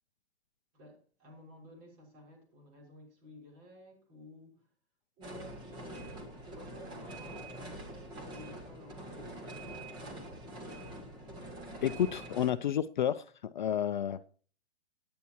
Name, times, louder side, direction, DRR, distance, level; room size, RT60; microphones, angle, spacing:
voice 1, 0.7-4.7 5.2-6.0 6.5-10.7, left 1 dB, 30° right, 5.7 m, -53 dB
sound 1, 5.2-12.5, right 1 dB, 15° right, 1.7 m, -45 dB
voice 2, 11.8-14.3, left 10 dB, 45° left, 0.5 m, -31 dB
18.5 x 9.6 x 3.0 m
hypercardioid pair, 160°, 33 cm